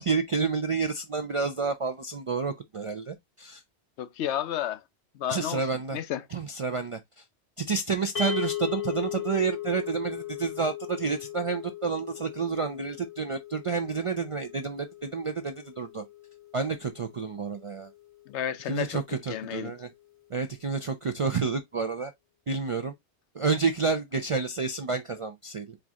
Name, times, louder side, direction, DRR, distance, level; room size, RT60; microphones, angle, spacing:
voice 1, 0.0-3.6 5.3-6.0 6.3-7.0 7.7-16.0 16.5-17.9 18.7-19.9 20.3-22.1 22.5-22.9 23.3-25.8, right 5 dB, 55° right, 0.3 m, -29 dB
voice 2, 4.0-4.8 5.1-6.2 18.3-19.7, left 11 dB, 80° left, 0.9 m, -32 dB
sound 1, 8.2-18.5, left 10 dB, 40° left, 0.6 m, -38 dB
4.5 x 2.6 x 3.5 m
omnidirectional pair, 1.2 m